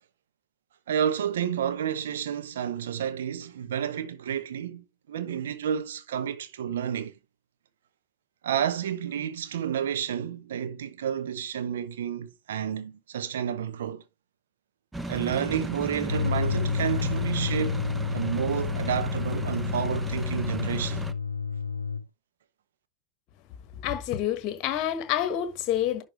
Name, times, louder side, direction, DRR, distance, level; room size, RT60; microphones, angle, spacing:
voice 1, 0.9-7.1 8.4-14.0 15.1-17.8 18.1-21.1, right 9 dB, 60° right, 1.1 m, -30 dB
sound 1, 14.9-21.1, right 2 dB, 5° right, 0.7 m, -36 dB
sound 2, 16.1-22.1, left 5 dB, 80° left, 0.4 m, -30 dB
voice 2, 23.8-26.0, left 11 dB, 40° left, 1.4 m, -28 dB
11.0 x 4.4 x 3.3 m
figure-of-eight pair, 90°, 0 cm